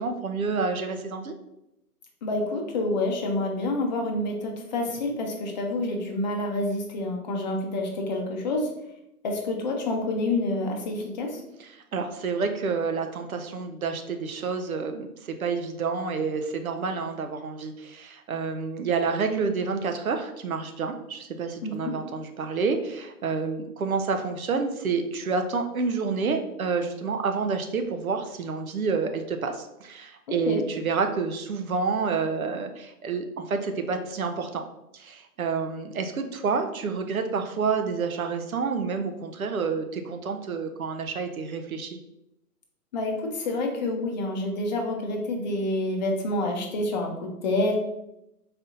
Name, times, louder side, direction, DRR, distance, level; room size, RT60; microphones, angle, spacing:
voice 1, 0.0-1.4 11.6-34.6 34.9-42.0, right 5 dB, 65° right, 6 dB, 0.6 m, -29 dB
voice 2, 2.2-8.7 9.2-11.4 21.6-21.9 30.5-30.6 42.9-47.8, left 2 dB, 30° left, 1 dB, 0.7 m, -28 dB
4.1 x 2.7 x 3.8 m, 0.86 s
figure-of-eight pair, 120°, 47 cm